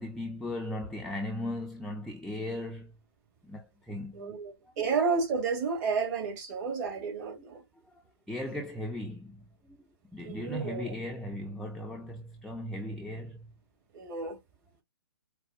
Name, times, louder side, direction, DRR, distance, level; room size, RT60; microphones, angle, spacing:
voice 1, 0.0-3.0 3.4-4.4 6.6-6.7 8.3-13.5, left 1 dB, ahead, 0.5 m, -37 dB
voice 2, 4.1-7.6 10.2-10.9 13.9-14.4, right 5 dB, 45° right, 2.1 m, -31 dB
4.7 x 2.3 x 2.9 m
figure-of-eight pair, 125°, 14 cm